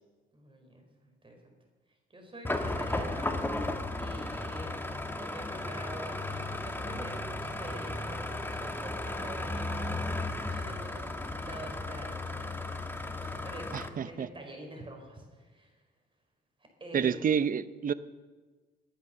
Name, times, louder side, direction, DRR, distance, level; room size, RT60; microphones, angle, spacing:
voice 1, 0.3-1.5 2.1-15.8 16.8-17.3, right 1 dB, 25° right, 2 dB, 4.8 m, -46 dB
sound 1, 2.4-13.9, left 2 dB, 10° left, 1.5 m, -35 dB
voice 2, 13.7-14.3 16.9-17.9, right 7 dB, 45° right, 15 dB, 0.7 m, -29 dB
22.0 x 8.3 x 7.0 m, 1.4 s
cardioid pair, 90°, 20 cm